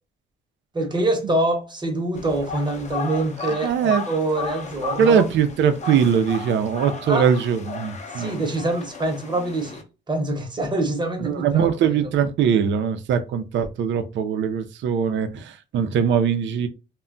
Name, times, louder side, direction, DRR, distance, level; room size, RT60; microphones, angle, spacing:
voice 1, 0.7-5.2 7.1-7.3 8.2-12.1, right 2 dB, 20° right, 0.9 m, -25 dB
sound 1, 2.2-9.8, left 4 dB, 35° left, 0.7 m, -34 dB
voice 2, 3.6-4.0 5.0-8.4 11.2-16.7, right 7 dB, 70° right, 0.5 m, -21 dB
2.2 x 2.1 x 3.7 m
cardioid pair, 90°, 20 cm